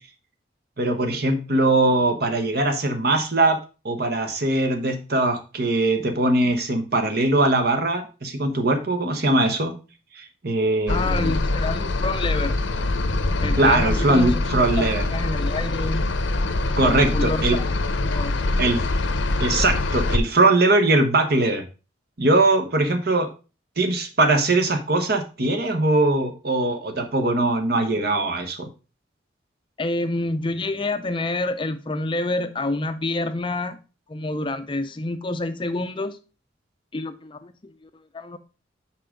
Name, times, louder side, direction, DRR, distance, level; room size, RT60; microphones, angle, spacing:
voice 1, 0.8-3.6 3.8-9.7 10.2-11.4 13.5-15.0 16.8-17.6 18.6-18.8 19.4-21.6 22.2-23.3 23.8-28.7, right 2 dB, 55° right, 1.2 m, -21 dB
sound 1, 10.9-20.2, left 2 dB, 80° left, 0.8 m, -24 dB
voice 2, 10.9-12.6 13.4-14.4 14.8-16.1 16.8-17.6 18.0-18.5 27.9-28.3 29.8-33.8 34.1-36.2 36.9-38.4, left 2 dB, 25° left, 0.5 m, -28 dB
5.7 x 5.0 x 5.1 m
head